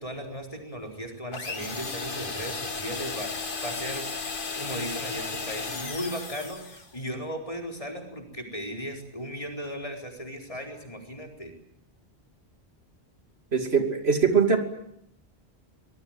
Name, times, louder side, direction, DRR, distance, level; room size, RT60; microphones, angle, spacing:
voice 1, 0.0-4.0 4.6-11.5, equal, 30° left, 2 dB, 4.6 m, -36 dB
sound 1, 1.3-6.9, left 4 dB, 55° left, 1.8 m, -34 dB
voice 2, 13.5-14.6, right 6 dB, 75° right, 6 dB, 3.1 m, -22 dB
25.0 x 20.0 x 9.1 m, 0.76 s
omnidirectional pair, 1.1 m